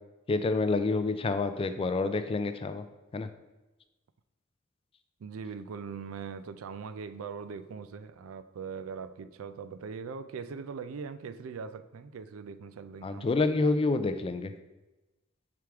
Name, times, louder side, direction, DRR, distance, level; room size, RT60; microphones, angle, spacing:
voice 1, 0.3-2.8 3.1-3.3 13.0-14.5, left 3 dB, 25° left, 0.3 m, -28 dB
voice 2, 5.2-13.3, right 5 dB, 85° right, 0.4 m, -41 dB
6.0 x 4.8 x 3.5 m
head